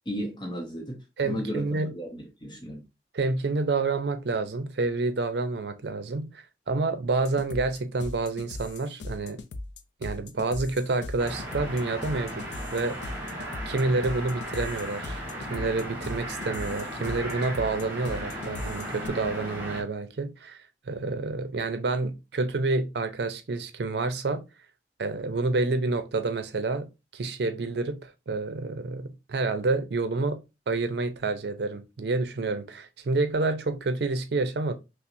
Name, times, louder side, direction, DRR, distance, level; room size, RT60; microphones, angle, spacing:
voice 1, 0.1-2.8, equal, 25° left, 0.7 m, -35 dB
voice 2, 1.2-1.9 3.1-9.4 10.0-13.0 13.7-15.2 15.5-20.6 20.9-24.4 25.0-34.7, right 3 dB, 70° right, 0.5 m, -28 dB
sound 1, 7.2-19.1, left 2 dB, 80° left, 0.4 m, -39 dB
sound 2, 11.2-19.8, equal, 10° right, 1.1 m, -36 dB
5.6 x 2.0 x 2.5 m
head